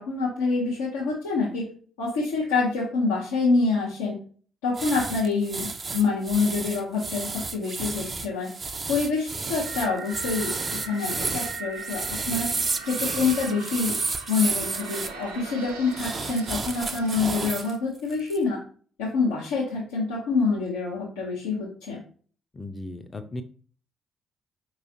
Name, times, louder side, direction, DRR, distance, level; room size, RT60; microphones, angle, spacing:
voice 1, 0.0-1.6 2.0-4.1 4.6-8.5 8.9-12.5 12.8-14.0 14.3-18.6 19.0-22.0, left 4 dB, 75° left, -5 dB, 0.9 m, -26 dB
sound 1, 4.7-15.1 15.9-17.7 18.1-18.4, right 4 dB, 35° right, 0.5 m, -31 dB
sound 2, 9.6-17.8, right 4 dB, 85° right, 0.7 m, -41 dB
voice 2, 22.5-23.4, left 2 dB, 30° left, 8 dB, 0.6 m, -36 dB
4.8 x 3.0 x 2.7 m, 0.44 s
figure-of-eight pair, 45°, 0 cm